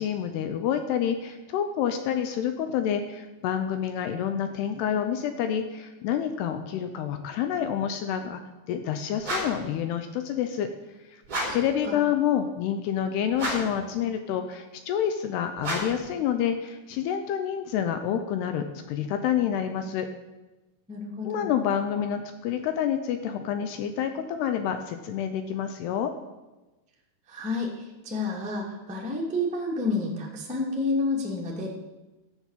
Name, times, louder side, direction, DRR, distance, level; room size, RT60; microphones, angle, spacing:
voice 1, 0.0-8.4 8.7-10.7 11.1-11.2 11.5-20.1 21.2-26.1, left 9 dB, 75° left, 8 dB, 2.6 m, -28 dB
sound 1, 9.2-9.7 11.2-11.7 13.3-13.8 15.6-16.1, equal, 20° right, 4.2 m, -31 dB
voice 2, 20.9-21.5 27.3-31.7, left 2 dB, 5° right, -3 dB, 0.8 m, -30 dB
13.5 x 7.9 x 7.4 m, 1.1 s
omnidirectional pair, 5.2 m